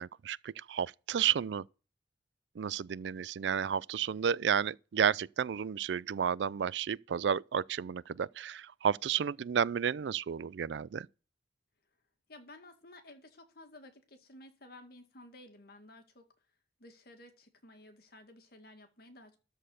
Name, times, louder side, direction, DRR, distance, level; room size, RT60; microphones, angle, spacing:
voice 1, 0.0-1.6 2.6-11.1, right 8 dB, 85° right, 0.4 m, -32 dB
voice 2, 12.3-16.3 16.8-19.4, left 1 dB, 60° left, 2.1 m, -54 dB
13.0 x 4.5 x 6.4 m
head